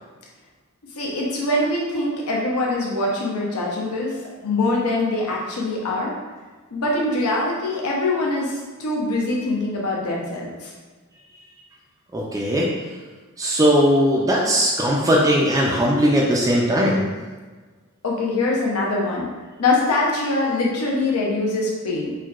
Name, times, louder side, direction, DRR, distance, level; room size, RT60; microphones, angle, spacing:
voice 1, 1.0-4.2 4.4-6.1 6.7-10.7 18.0-19.3 19.6-22.1, left 2 dB, 80° left, -3 dB, 0.7 m, -23 dB
voice 2, 12.1-12.7 13.4-17.1, equal, 15° right, -4 dB, 0.3 m, -19 dB
4.5 x 2.2 x 2.4 m, 1.4 s
head